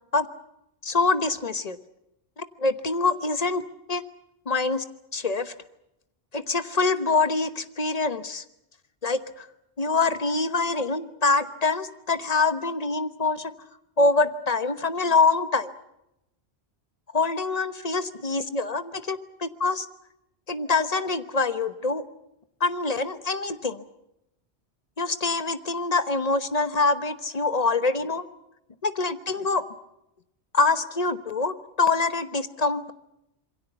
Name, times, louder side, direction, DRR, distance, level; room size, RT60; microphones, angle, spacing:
voice 1, 0.8-1.8 2.4-3.6 3.9-4.0 4.5-4.8 5.1-5.5 6.3-8.4 9.0-9.5 9.8-13.5 14.0-15.7 17.1-19.9 20.5-22.0 22.6-23.8 25.0-28.3 28.8-29.6 30.5-32.9, left 3 dB, 40° left, 10 dB, 1.1 m, -25 dB
27.0 x 23.0 x 6.9 m, 0.85 s
omnidirectional pair, 1.1 m